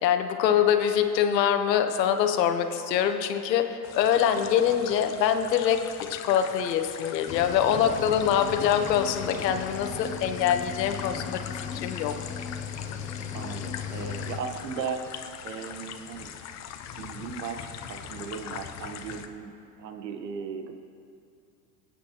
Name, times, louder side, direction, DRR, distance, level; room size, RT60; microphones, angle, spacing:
voice 1, 0.0-12.2, left 9 dB, 85° left, 7 dB, 1.1 m, -24 dB
sound 1, 3.8-19.3, left 9 dB, 35° left, 0.7 m, -41 dB
Cricket / Waves surf, 7.3-14.4, left 7 dB, 20° left, 0.3 m, -37 dB
voice 2, 13.3-15.0 15.4-16.3 17.0-20.7, right 6 dB, 85° right, 6 dB, 1.2 m, -37 dB
25.0 x 8.6 x 2.9 m, 2.5 s
supercardioid pair, 110°, 48 cm